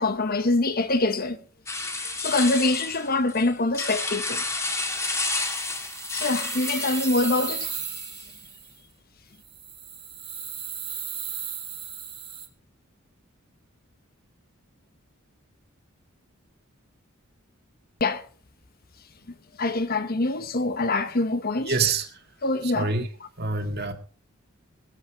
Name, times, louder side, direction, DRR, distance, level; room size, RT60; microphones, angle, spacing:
voice 1, 0.0-1.4 2.2-4.4 6.1-7.7 18.0-18.2 19.6-21.8 22.4-22.9, left 2 dB, 45° left, 1.2 m, -24 dB
sound 1, 1.7-8.3, left 2 dB, 15° left, 1.9 m, -31 dB
sound 2, 4.8-8.8 9.4-12.5, right 8 dB, 25° right, 2.1 m, -36 dB
voice 2, 21.7-22.1 22.6-23.1 23.4-23.9, right 4 dB, 50° right, 2.0 m, -26 dB
21.0 x 8.3 x 4.8 m
head